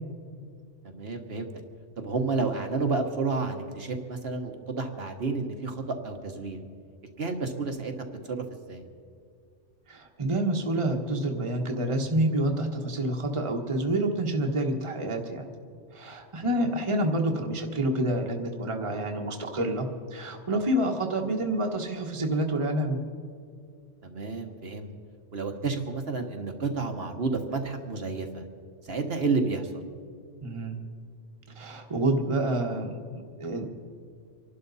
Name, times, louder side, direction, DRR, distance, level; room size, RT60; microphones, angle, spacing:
voice 1, 0.8-1.5 2.0-6.6 7.2-7.9 8.3-8.8 24.0-24.9 25.3-28.4 28.9-29.8, right 4 dB, 55° right, 4 dB, 1.4 m, -30 dB
voice 2, 9.9-15.5 15.9-23.0 30.4-30.8 31.6-33.7, right 1 dB, 25° right, 2 dB, 1.3 m, -28 dB
26.0 x 11.5 x 4.1 m, 2.3 s
omnidirectional pair, 1.3 m